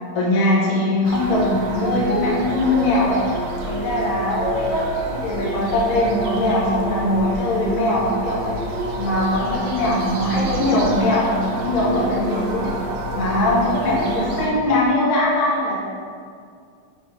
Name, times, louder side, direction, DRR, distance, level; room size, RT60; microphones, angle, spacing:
voice 1, 0.1-3.2 3.7-8.5 9.0-11.4 11.6-12.7 13.1-15.9, left 1 dB, 60° left, -6 dB, 1.5 m, -21 dB
sound 1, 1.0-14.5, right 1 dB, 75° right, 2.2 m, -28 dB
6.3 x 3.8 x 5.1 m, 2.3 s
omnidirectional pair, 3.6 m